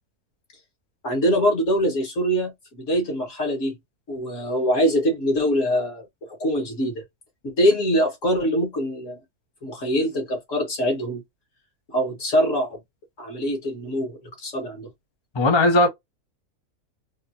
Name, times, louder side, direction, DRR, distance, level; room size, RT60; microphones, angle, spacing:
voice 1, 1.0-3.8 4.1-6.1 6.4-7.0 7.4-9.2 9.6-11.2 11.9-12.8 13.2-14.9, equal, 55° left, 1.9 m, -23 dB
voice 2, 15.3-15.9, left 2 dB, 30° left, 0.5 m, -17 dB
3.6 x 2.7 x 2.6 m
omnidirectional pair, 1.5 m